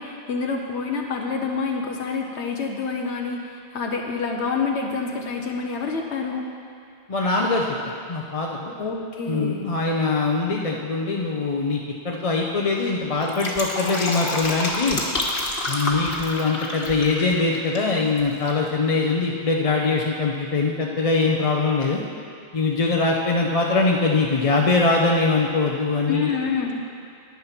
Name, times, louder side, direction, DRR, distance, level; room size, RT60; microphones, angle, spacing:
voice 1, 0.0-6.5 8.8-9.7 26.1-26.8, left 4 dB, 90° left, 1 dB, 1.2 m, -27 dB
voice 2, 7.1-7.7 8.1-8.7 9.3-11.8 12.0-15.0 15.7-22.0 22.5-26.3, left 3 dB, 35° left, -1 dB, 0.7 m, -22 dB
Fill (with liquid), 13.1-17.9 18.2-18.3, left 2 dB, 60° left, 1.6 m, -28 dB
10.5 x 9.6 x 5.8 m, 2.3 s
omnidirectional pair, 1.1 m